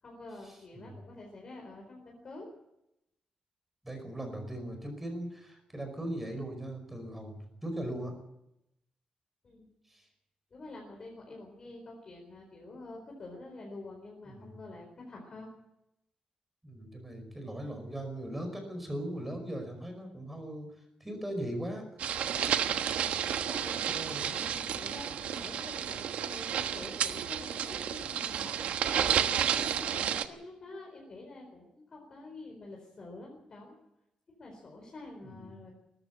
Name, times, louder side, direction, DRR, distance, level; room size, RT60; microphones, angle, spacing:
voice 1, 0.0-2.5 9.4-9.7 10.5-15.5 23.0-23.8 24.2-33.8 34.4-35.7, left 2 dB, 35° left, 0 dB, 4.4 m, -47 dB
voice 2, 3.8-7.4 7.6-8.1 9.9-10.0 14.3-14.6 16.6-20.7 21.0-21.9 23.9-24.8 35.2-35.5, right 1 dB, 5° right, 5 dB, 5.2 m, -39 dB
sound 1, 22.0-30.3, right 9 dB, 85° right, 1.2 m, -31 dB
19.0 x 14.5 x 9.6 m, 0.85 s
wide cardioid pair, 170°, 2 cm